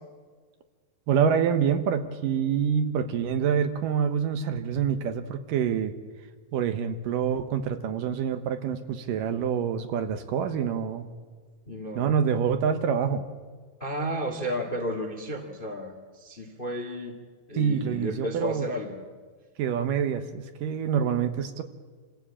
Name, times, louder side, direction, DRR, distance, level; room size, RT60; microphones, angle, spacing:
voice 1, 1.1-6.0 6.5-11.1 12.0-13.2 17.5-18.6 19.6-21.6, right 7 dB, 70° right, 8 dB, 2.6 m, -26 dB
voice 2, 11.6-12.1 13.8-17.1 17.5-19.0, equal, 25° left, 4 dB, 1.1 m, -32 dB
27.5 x 15.0 x 8.7 m, 1.5 s
omnidirectional pair, 4.1 m